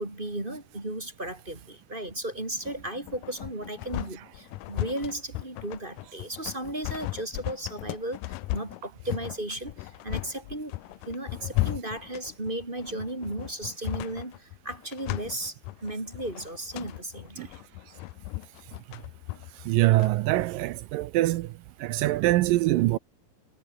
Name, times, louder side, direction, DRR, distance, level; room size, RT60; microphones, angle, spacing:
voice 1, 0.0-10.8 11.1-17.6, right 1 dB, 15° right, 3.2 m, -35 dB
sound 1, 2.6-20.1, left 20 dB, 90° left, 1.9 m, -36 dB
voice 2, 19.6-21.5 21.8-23.0, right 17 dB, 75° right, 2.2 m, -24 dB
omnidirectional pair, 4.4 m